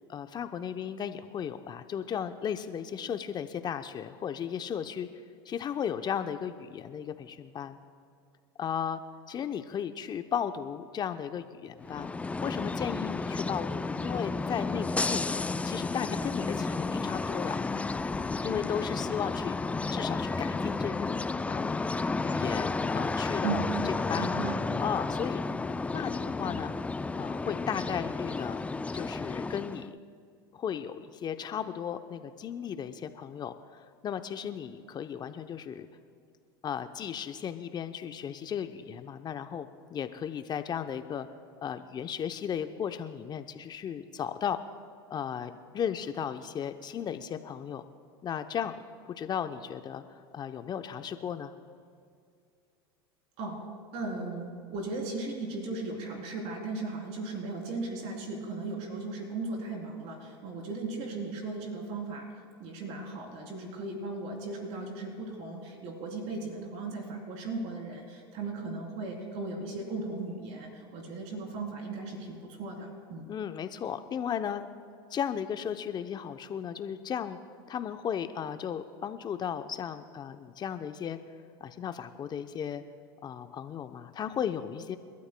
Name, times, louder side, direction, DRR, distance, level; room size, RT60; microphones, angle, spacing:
voice 1, 0.1-5.1 5.5-7.8 8.6-9.0 9.3-12.1 12.4-17.6 18.4-19.6 19.9-21.7 22.2-24.5 24.8-25.4 25.9-26.7 27.1-28.6 28.9-29.9 30.5-35.9 36.6-41.3 41.6-44.6 45.1-47.8 48.2-48.8 49.2-51.5 73.3-74.7 75.1-77.4 77.7-81.2 81.6-82.8 83.2-85.0, left 8 dB, 35° left, 9 dB, 0.7 m, -35 dB
sound 1, 11.8-29.9, left 3 dB, 10° left, 0.4 m, -32 dB
voice 2, 24.2-24.6 53.4-53.6 53.9-62.3 62.6-73.3, right 3 dB, 55° right, 0 dB, 3.5 m, -37 dB
29.5 x 12.5 x 2.3 m, 2.3 s
hypercardioid pair, 90°, 13 cm